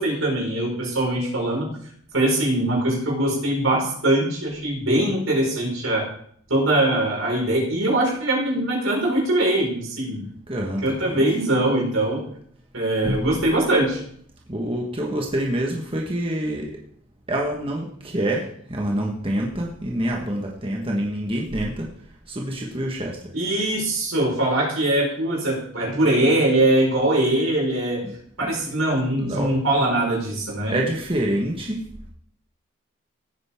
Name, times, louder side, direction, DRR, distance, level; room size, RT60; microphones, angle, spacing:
voice 1, 0.0-1.7 2.1-6.1 6.5-10.3 10.8-12.2 12.7-14.0 23.3-28.0 28.4-30.8, right 1 dB, 80° right, -2 dB, 5.1 m, -22 dB
voice 2, 10.5-11.2 13.0-13.3 14.5-16.7 17.3-21.9 22.3-23.2 28.4-28.5 29.2-29.5 30.7-31.8, right 1 dB, 25° right, -2 dB, 1.4 m, -26 dB
16.0 x 9.1 x 3.7 m, 0.64 s
head